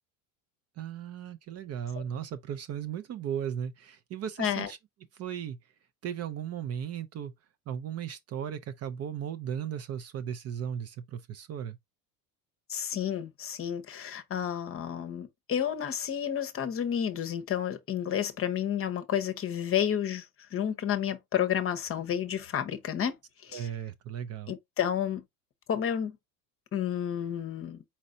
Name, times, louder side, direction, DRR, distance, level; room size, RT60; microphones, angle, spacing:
voice 1, 0.8-4.8 5.2-5.6 6.0-7.3 7.7-11.8 23.5-24.5, right 9 dB, 40° right, 0.5 m, -36 dB
voice 2, 4.4-4.7 12.7-23.2 23.4-23.7 24.5-25.2 25.7-26.2 26.7-27.8, left 9 dB, 30° left, 0.8 m, -31 dB
4.3 x 4.0 x 2.5 m
supercardioid pair, 105°, 42 cm